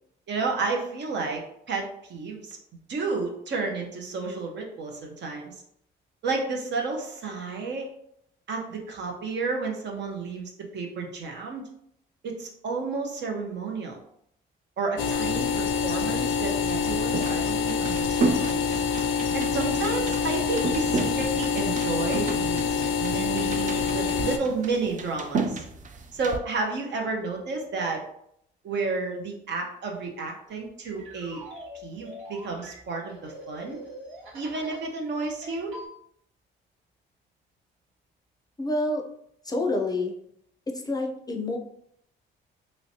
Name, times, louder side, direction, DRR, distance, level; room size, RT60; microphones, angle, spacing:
voice 1, 0.3-1.4 1.7-2.6 2.9-5.6 6.2-7.9 8.5-11.6 12.2-14.0 14.8-18.8 19.3-25.6 26.1-28.0 28.6-31.4 31.7-33.8 34.3-35.7, right 4 dB, 65° right, 1 dB, 0.8 m, -31 dB
sound 1, 15.0-24.4, left 5 dB, 80° left, 0.4 m, -26 dB
sound 2, 16.7-26.4, right 4 dB, 40° right, 0.4 m, -33 dB
sound 3, 30.5-34.9 35.2-35.9, equal, 90° right, 1.3 m, -44 dB
voice 2, 38.6-39.0 39.4-40.1 40.7-41.6, left 2 dB, 20° left, 1 dB, 0.5 m, -28 dB
3.1 x 3.1 x 2.7 m, 0.72 s
cardioid pair, 90°, 20 cm